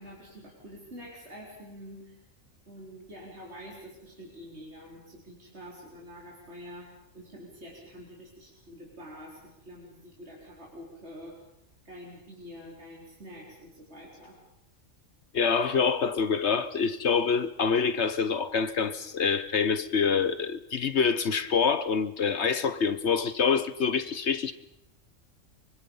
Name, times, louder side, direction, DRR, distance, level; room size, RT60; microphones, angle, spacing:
voice 1, 0.0-2.2 2.7-11.4 11.8-14.4, equal, 55° right, 4.6 m, -47 dB
voice 2, 15.3-24.5, left 6 dB, 60° left, 1.2 m, -26 dB
24.5 x 24.5 x 5.5 m
omnidirectional pair, 1.4 m